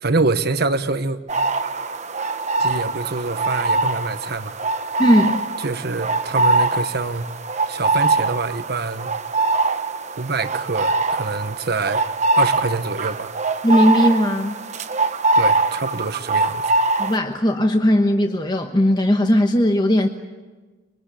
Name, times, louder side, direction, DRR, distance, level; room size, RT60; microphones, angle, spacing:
voice 1, 0.0-1.2 2.6-4.5 5.6-7.3 7.7-9.1 10.2-12.1 12.4-13.3 15.4-16.7, right 3 dB, 55° right, 1.1 m, -25 dB
sound 1, 1.3-17.2, right 3 dB, 35° right, 0.9 m, -22 dB
voice 2, 5.0-5.4 13.6-14.6 17.0-20.1, equal, 20° left, 1.1 m, -17 dB
27.0 x 23.0 x 8.4 m
head